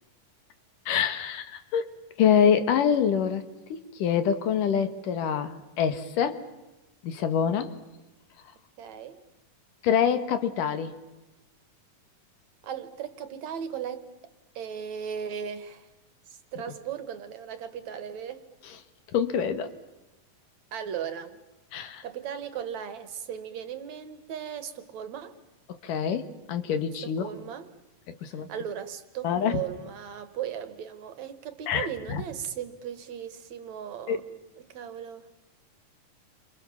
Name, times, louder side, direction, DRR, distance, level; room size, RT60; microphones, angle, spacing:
voice 1, 0.9-1.9 2.2-3.4 3.7-6.4 7.0-7.7 9.8-10.9 19.1-19.7 21.7-22.0 25.7-27.2 28.1-28.5 29.2-29.6 31.7-32.2 34.1-34.2, left 8 dB, 75° left, 3.1 m, -25 dB
voice 2, 8.8-9.2 12.6-14.1 14.6-15.9 16.3-18.5 20.7-21.4 22.0-25.4 27.0-27.7 28.5-34.2 34.6-35.3, right 8 dB, 65° right, 2.4 m, -37 dB
29.0 x 26.5 x 7.1 m
omnidirectional pair, 3.9 m